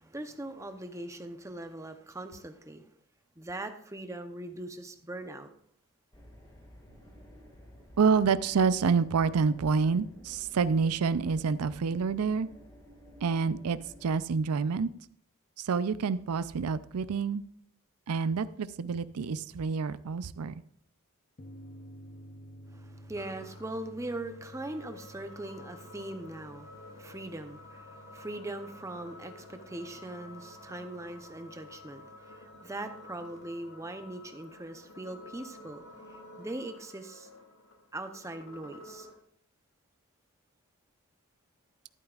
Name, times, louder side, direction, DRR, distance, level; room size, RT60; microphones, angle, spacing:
voice 1, 0.0-2.9 3.4-5.5 22.7-35.8 36.1-37.3 37.9-39.1, right 1 dB, 15° right, 8 dB, 0.7 m, -41 dB
sound 1, 6.1-14.1, equal, 20° left, 1.8 m, -53 dB
voice 2, 8.0-12.5 13.2-14.9 15.6-17.4 18.1-20.5, right 5 dB, 85° right, 15 dB, 0.5 m, -28 dB
sound 2, 21.4-34.3, equal, 40° left, 0.6 m, -54 dB
sound 3, 23.2-39.2, left 1 dB, 80° left, 2.2 m, -51 dB
12.0 x 10.5 x 2.4 m, 0.67 s
head